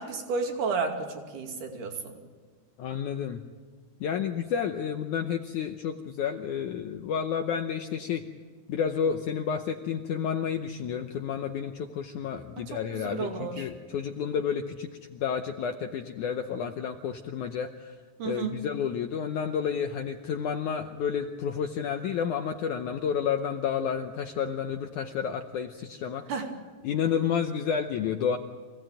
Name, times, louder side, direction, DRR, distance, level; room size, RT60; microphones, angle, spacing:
voice 1, 0.0-2.2 12.6-13.7 18.2-18.6 26.3-26.5, right 4 dB, 55° right, 3 dB, 3.8 m, -32 dB
voice 2, 2.8-3.4 4.0-8.2 8.7-17.9 18.2-26.3 26.8-28.4, left 7 dB, 75° left, 5 dB, 1.9 m, -30 dB
26.0 x 17.5 x 9.2 m, 1.5 s
omnidirectional pair, 4.5 m